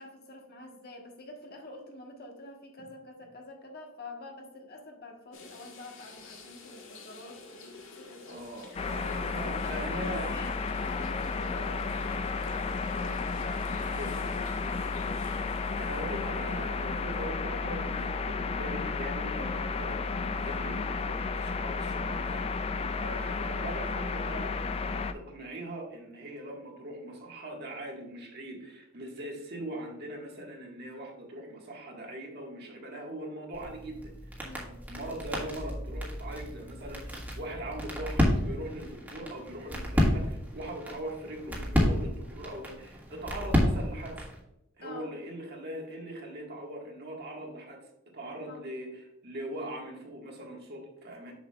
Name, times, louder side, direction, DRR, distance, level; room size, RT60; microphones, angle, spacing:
voice 1, 0.0-8.8 9.3-14.4 22.8-23.0 34.4-34.7 44.8-45.1 48.5-48.7, left 1 dB, 50° left, 2 dB, 1.3 m, -46 dB
sound 1, 5.3-17.5 18.0-18.1 20.4-20.6, left 3 dB, 90° left, 1.4 m, -51 dB
voice 2, 8.3-10.3 13.8-14.2 14.6-34.1 34.9-44.3 44.8-47.9 48.1-51.3, right 1 dB, 55° right, 0 dB, 1.6 m, -41 dB
sound 2, 8.8-25.1, left 4 dB, 30° left, 0.3 m, -32 dB
sound 3, 33.5-44.4, equal, 10° right, 1.6 m, -31 dB
7.1 x 6.7 x 2.4 m, 0.86 s
head